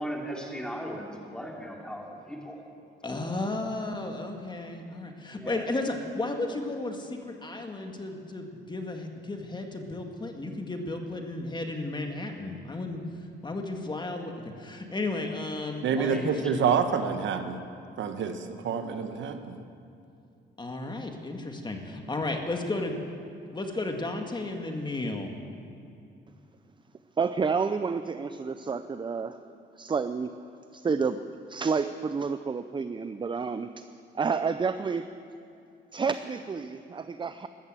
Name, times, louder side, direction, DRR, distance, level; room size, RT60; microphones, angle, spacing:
voice 1, 0.0-2.6 5.3-5.6 15.9-16.3, equal, 5° left, -1 dB, 3.4 m, -37 dB
voice 2, 3.0-13.0 13.4-16.4 20.6-23.0 23.5-25.3, left 2 dB, 20° left, 3 dB, 1.8 m, -34 dB
voice 3, 15.8-17.6 18.0-19.6, right 6 dB, 70° right, 8 dB, 1.2 m, -27 dB
voice 4, 27.2-29.4 29.8-30.3 30.7-31.2 31.5-33.8 34.1-35.1 35.9-37.5, right 5 dB, 25° right, 11 dB, 0.5 m, -29 dB
13.5 x 13.0 x 7.5 m, 2.6 s
cardioid pair, 90°, 20 cm